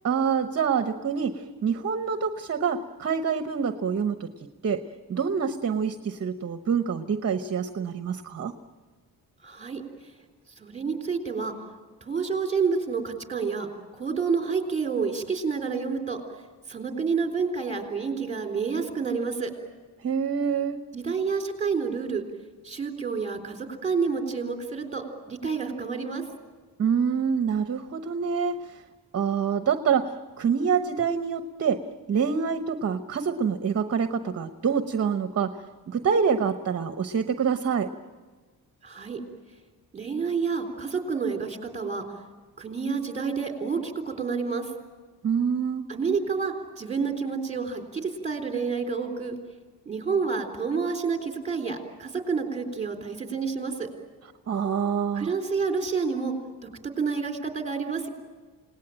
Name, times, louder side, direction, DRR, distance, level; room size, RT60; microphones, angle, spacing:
voice 1, 0.0-4.8 5.1-8.5 20.0-20.8 26.8-28.8 29.1-31.8 32.1-35.6 35.9-37.9 45.2-45.9 54.5-55.3, right 6 dB, 40° right, 9 dB, 1.0 m, -26 dB
voice 2, 9.4-9.8 10.6-11.5 12.0-16.2 16.7-19.5 20.9-22.2 22.6-26.2 38.8-39.2 39.9-42.0 42.6-44.7 45.9-49.4 49.9-53.9 55.1-56.3 56.6-56.7 57.0-58.1, right 5 dB, 20° right, 3 dB, 3.8 m, -29 dB
29.0 x 19.0 x 9.0 m, 1.4 s
wide cardioid pair, 165°, 36 cm